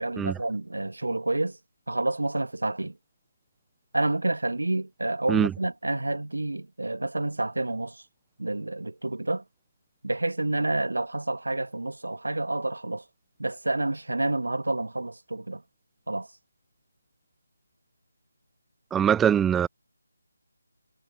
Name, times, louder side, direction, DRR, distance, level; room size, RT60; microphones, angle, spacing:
voice 1, 0.0-1.6 1.9-3.0 3.9-8.0 8.4-9.4 10.0-13.0 13.4-15.6 16.1-16.3, right 2 dB, 80° right, 1.3 m, -29 dB
voice 2, 18.9-19.7, right 9 dB, 5° right, 0.4 m, -22 dB
figure-of-eight pair, 160°, 0 cm